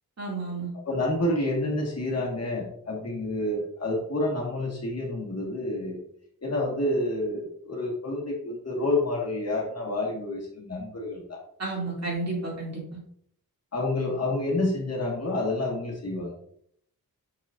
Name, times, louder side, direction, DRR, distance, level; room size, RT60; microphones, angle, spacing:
voice 1, 0.2-0.7 11.6-13.0, right 3 dB, 45° right, -4 dB, 2.7 m, -31 dB
voice 2, 0.9-6.0 6.4-11.4 13.7-16.3, left 2 dB, 45° left, -3 dB, 1.9 m, -29 dB
6.8 x 6.3 x 2.6 m, 0.66 s
wide cardioid pair, 135°, 36 cm